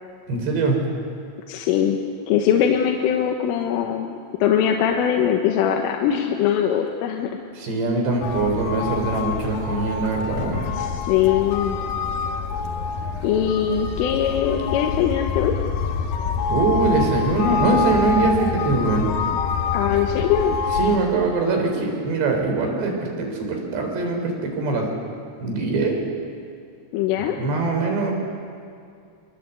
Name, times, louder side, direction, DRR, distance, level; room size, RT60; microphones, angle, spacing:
voice 1, 0.3-0.8 7.6-10.6 16.5-19.1 20.8-24.9 25.4-26.0 27.2-28.1, right 3 dB, 60° right, 2 dB, 6.1 m, -22 dB
voice 2, 1.5-2.0 2.3-7.3 10.7-11.8 13.2-15.5 19.7-20.6 26.9-27.4, left 9 dB, 85° left, 2 dB, 3.8 m, -21 dB
sound 1, 8.2-21.0, left 5 dB, 65° left, 2.6 m, -26 dB
25.5 x 23.0 x 8.3 m, 2.4 s
omnidirectional pair, 5.6 m